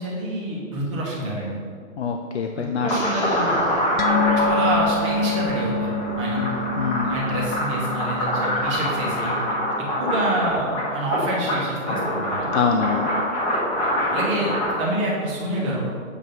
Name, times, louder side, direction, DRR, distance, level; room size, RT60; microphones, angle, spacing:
voice 1, 0.0-1.6 2.5-3.6 4.4-6.4 7.1-9.4 10.0-12.5 14.1-14.5 14.8-15.9, right 1 dB, 20° right, -5 dB, 1.2 m, -27 dB
voice 2, 2.0-2.9 6.4-7.1 12.5-13.1, left 6 dB, 55° left, 4 dB, 0.5 m, -25 dB
sound 1, 2.9-14.7, equal, 30° left, 1.5 m, -25 dB
sound 2, 4.0-10.8 11.1-11.3 11.7-11.8, left 3 dB, 85° left, 0.8 m, -27 dB
7.8 x 3.1 x 5.3 m, 2.2 s
hypercardioid pair, 155°, 41 cm